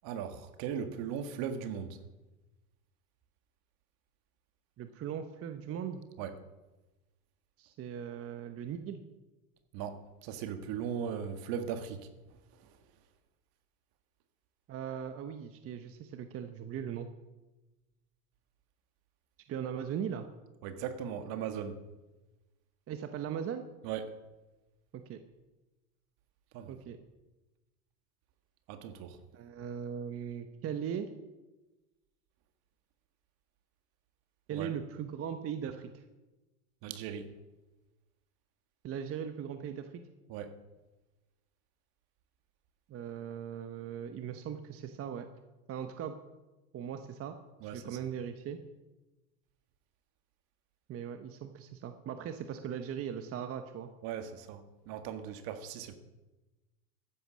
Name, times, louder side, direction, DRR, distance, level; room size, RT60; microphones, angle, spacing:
voice 1, 0.0-2.0 6.2-6.3 9.7-12.8 20.6-21.9 23.8-24.1 26.5-26.8 28.7-29.2 34.5-34.8 36.8-37.3 40.3-40.6 47.6-48.0 54.0-56.0, right 8 dB, 55° right, 9 dB, 1.8 m, -38 dB
voice 2, 4.8-6.0 7.6-9.0 14.7-17.1 19.5-20.3 22.9-23.7 24.9-25.2 26.7-27.0 29.3-31.1 34.5-36.0 38.8-40.0 42.9-45.3 45.7-46.1 46.7-47.4 47.6-48.6 50.9-53.9, right 8 dB, 30° right, 8 dB, 1.0 m, -39 dB
14.5 x 10.5 x 6.3 m, 1.1 s
supercardioid pair, 120°, 43 cm